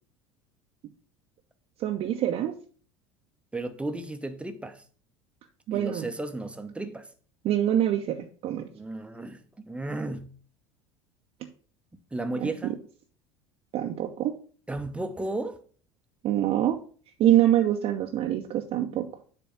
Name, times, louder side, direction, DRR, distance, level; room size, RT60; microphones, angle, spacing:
voice 1, 1.8-2.5 5.7-6.1 7.4-8.7 12.4-12.5 13.7-14.3 16.2-16.8 17.2-19.1, right 12 dB, 45° right, 0.7 m, -25 dB
voice 2, 3.5-4.8 5.7-7.1 8.7-10.3 12.1-12.8 14.7-15.6, right 2 dB, 10° right, 0.7 m, -34 dB
7.1 x 3.4 x 5.9 m
figure-of-eight pair, 70°, 14 cm